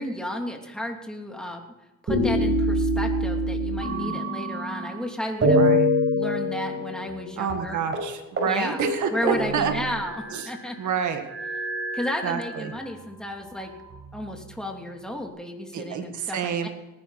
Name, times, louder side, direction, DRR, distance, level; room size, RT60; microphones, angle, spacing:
voice 1, 0.0-1.6 2.0-5.6 6.1-7.8 8.5-8.8 9.1-10.8 11.9-13.7 14.1-16.7, left 1 dB, ahead, 2 dB, 2.8 m, -33 dB
sound 1, 2.1-5.0 5.4-7.2 7.5-7.6 7.9-8.1 8.4-8.5 8.8-10.5 11.3-12.9 13.6-14.5, equal, 40° right, 5.9 m, -25 dB
voice 2, 3.9-4.3 5.6-5.9 7.4-9.7 10.3-10.5 10.8-11.2 12.2-12.7 15.7-16.7, right 7 dB, 75° right, 6 dB, 1.8 m, -28 dB
19.0 x 10.5 x 4.2 m, 1.0 s
cardioid pair, 90°, 30 cm